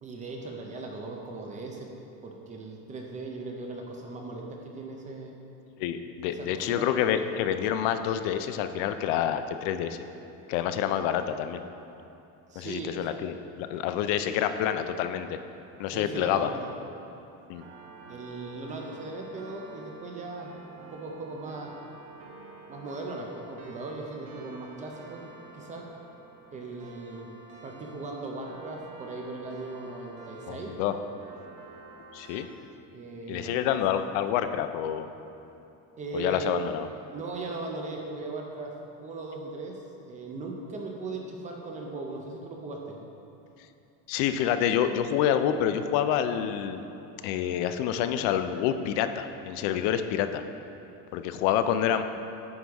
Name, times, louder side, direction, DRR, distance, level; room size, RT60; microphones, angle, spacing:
voice 1, 0.0-1.9 2.2-5.3 6.3-6.9 12.5-13.1 15.9-16.7 18.1-21.7 22.7-25.2 25.5-25.9 26.5-27.3 27.6-30.7 32.9-33.6 36.0-36.5 37.1-38.7 39.0-43.0, right 2 dB, 20° right, 0 dB, 0.4 m, -38 dB
voice 2, 5.8-10.0 10.5-11.6 12.6-15.4 15.8-16.5 17.5-17.6 30.5-31.0 32.1-32.5 33.3-35.1 36.1-36.9 44.1-46.9 47.2-50.4 51.1-52.0, left 9 dB, 80° left, 9 dB, 0.6 m, -27 dB
sound 1, 17.5-32.5, right 3 dB, 75° right, 1.3 m, -49 dB
9.4 x 3.5 x 6.2 m, 2.9 s
cardioid pair, 180°, 39 cm